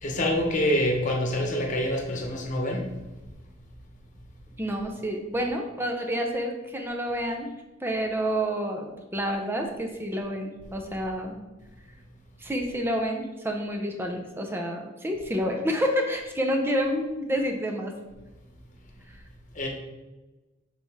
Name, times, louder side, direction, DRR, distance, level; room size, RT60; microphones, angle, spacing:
voice 1, 0.0-2.9 19.5-19.7, left 1 dB, 40° left, 1 dB, 1.1 m, -26 dB
voice 2, 4.6-7.5 7.8-11.4 12.4-17.9, equal, 10° right, 2 dB, 0.7 m, -29 dB
6.7 x 4.1 x 3.6 m, 1.1 s
head